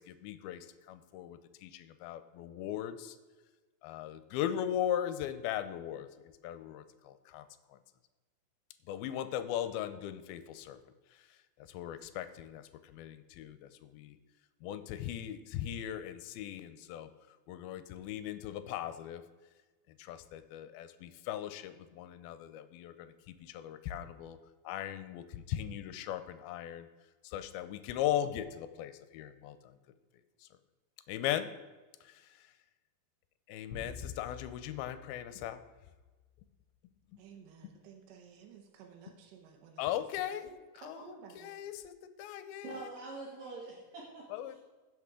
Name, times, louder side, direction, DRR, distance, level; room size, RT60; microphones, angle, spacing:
voice 1, 0.0-3.2 3.8-6.1 6.4-7.8 8.9-10.8 11.6-14.2 14.6-17.1 17.5-19.2 20.0-24.4 24.6-26.9 27.2-29.7 31.1-31.6 32.0-32.3 33.5-35.6 37.1-37.2 39.8-40.5 40.7-42.9 44.3-44.6, left 11 dB, 80° left, 11 dB, 2.3 m, -38 dB
sound 1, 33.7-36.3, left 5 dB, 40° left, 2.5 m, -49 dB
voice 2, 37.2-40.0 40.4-41.5, right 6 dB, 80° right, 2 dB, 3.0 m, -54 dB
voice 3, 42.6-44.6, right 3 dB, 60° right, -4 dB, 3.6 m, -45 dB
16.0 x 6.3 x 3.7 m, 1.3 s
omnidirectional pair, 4.7 m